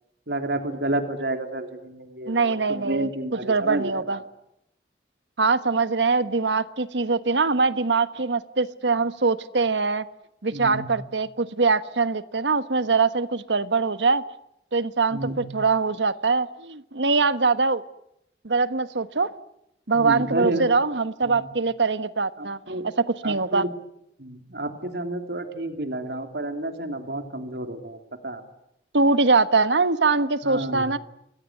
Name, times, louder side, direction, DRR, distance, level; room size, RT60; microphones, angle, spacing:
voice 1, 0.3-4.2 10.5-10.9 15.1-15.4 19.9-20.6 21.2-21.5 22.4-22.9 23.2-23.7 24.2-28.0 28.2-28.4 30.4-30.9, right 1 dB, 65° right, 6 dB, 3.3 m, -30 dB
voice 2, 2.3-3.1 3.5-4.2 5.4-10.0 10.4-14.2 14.7-17.8 18.4-19.3 19.9-23.6 28.9-31.0, right 4 dB, 85° right, 13 dB, 1.3 m, -23 dB
28.5 x 21.5 x 9.4 m, 0.83 s
head